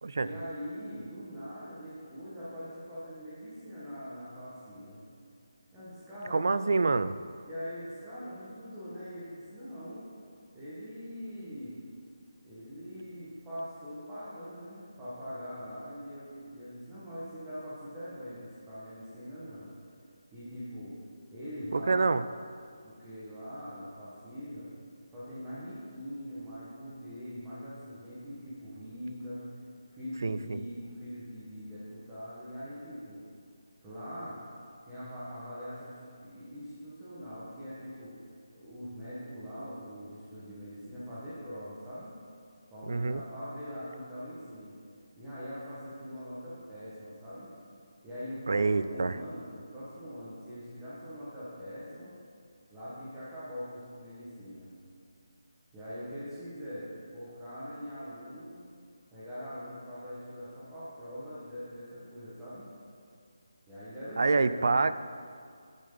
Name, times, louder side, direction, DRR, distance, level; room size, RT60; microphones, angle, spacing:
voice 1, 0.1-5.0 5.7-6.8 7.5-10.1 10.5-11.8 12.4-19.7 20.3-20.9 21.3-22.1 22.8-24.7 25.1-29.4 29.9-33.2 33.8-34.4 34.8-38.1 38.5-42.1 42.7-44.7 45.2-47.5 48.0-52.1 52.7-54.7 55.7-58.5 59.1-62.7 63.7-64.8, equal, 10° right, -13 dB, 1.5 m, -42 dB
voice 2, 6.3-7.1 21.7-22.2 30.2-30.6 42.9-43.2 48.5-49.2 64.2-64.9, right 3 dB, 50° right, 13 dB, 0.4 m, -26 dB
9.9 x 9.0 x 3.9 m, 2.2 s
figure-of-eight pair, 175°, 2 cm